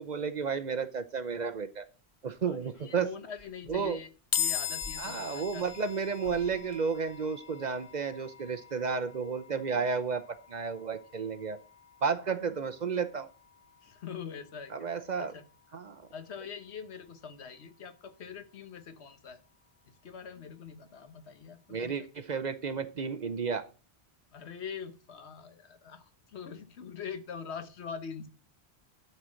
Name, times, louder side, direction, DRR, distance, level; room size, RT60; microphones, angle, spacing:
voice 1, 0.0-1.8 2.2-3.1 3.7-4.0 5.0-10.2 10.5-11.6 12.0-13.3 14.7-15.3 15.7-16.1 21.7-23.7, right 5 dB, 45° right, 10 dB, 0.7 m, -32 dB
sound 1, 2.0-7.8 9.2-10.0 10.3-10.4, left 2 dB, 30° left, 1.5 m, -56 dB
voice 2, 2.4-4.1 4.4-5.7 13.8-14.9 15.2-15.5 16.1-19.4 19.9-21.9 24.3-28.3, left 6 dB, 80° left, 10 dB, 1.3 m, -43 dB
sound 2, 4.3-17.7, left 8 dB, 50° left, 0.5 m, -41 dB
11.0 x 4.3 x 6.2 m, 0.35 s
omnidirectional pair, 1.1 m